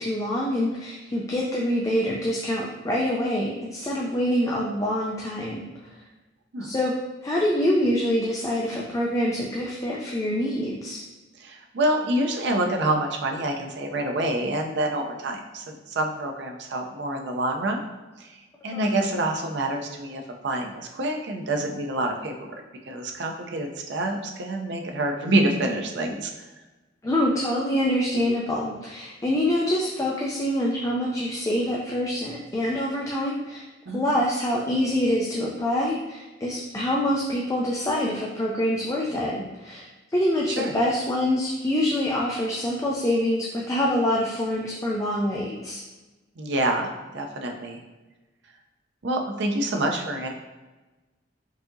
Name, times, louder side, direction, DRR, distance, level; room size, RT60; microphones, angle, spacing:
voice 1, 0.0-5.7 6.6-6.9 7.2-11.0 18.7-18.9 27.0-33.6 33.9-45.8, left 1 dB, 15° left, -3 dB, 0.4 m, -25 dB
voice 2, 11.4-17.8 18.2-22.5 22.9-26.5 33.9-34.0 40.5-40.7 46.4-47.8 49.0-50.3, right 1 dB, 65° right, 3 dB, 0.5 m, -27 dB
4.7 x 2.7 x 2.6 m, 1.1 s
head